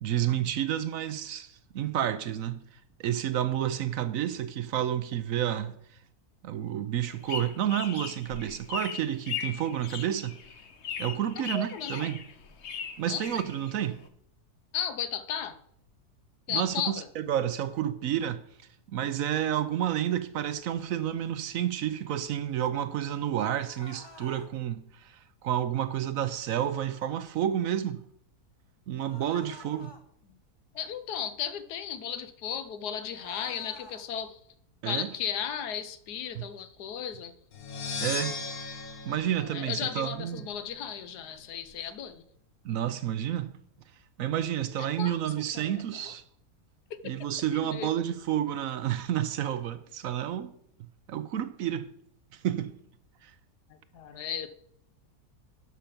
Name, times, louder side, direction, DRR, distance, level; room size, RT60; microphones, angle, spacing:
voice 1, 0.0-2.6 3.0-5.8 6.4-10.4 11.0-12.2 13.0-14.0 16.5-18.4 18.9-28.0 28.9-29.9 34.8-35.1 36.3-36.5 38.0-38.4 39.0-40.4 42.6-43.6 44.2-46.2 47.0-50.6 51.1-51.9 52.3-52.8 53.2-53.3, right 10 dB, 70° right, 0.9 m, -30 dB
sound 1, 7.0-14.1, left 7 dB, 50° left, 1.0 m, -39 dB
voice 2, 11.4-12.1 13.1-13.2 14.7-15.6 16.5-17.1 29.3-29.5 30.3-30.4 30.7-34.4 34.8-37.3 39.4-42.2 44.8-45.2 45.5-46.1 47.5-47.9 53.7-54.5, left 8 dB, 85° left, 1.4 m, -35 dB
sound 2, 23.5-24.5 29.0-30.0 33.1-34.0, left 1 dB, 20° left, 0.9 m, -49 dB
sound 3, 37.5-40.4, left 4 dB, 65° left, 1.6 m, -37 dB
11.5 x 5.8 x 5.2 m
omnidirectional pair, 1.7 m